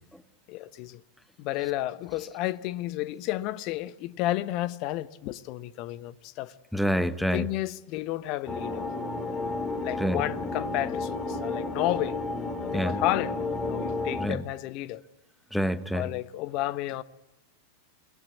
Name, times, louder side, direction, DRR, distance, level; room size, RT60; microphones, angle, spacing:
voice 1, 0.5-1.0 1.4-6.5 7.3-8.9 9.8-12.2 12.6-13.4 13.7-15.0 15.9-17.0, left 15 dB, 40° left, 1.0 m, -31 dB
voice 2, 6.7-7.5 10.0-10.2 12.7-13.0 14.2-14.4 15.5-16.1, equal, ahead, 1.2 m, -27 dB
sound 1, 8.5-14.3, left 3 dB, 20° left, 3.5 m, -32 dB
26.5 x 21.0 x 8.4 m
figure-of-eight pair, 90°, 0 cm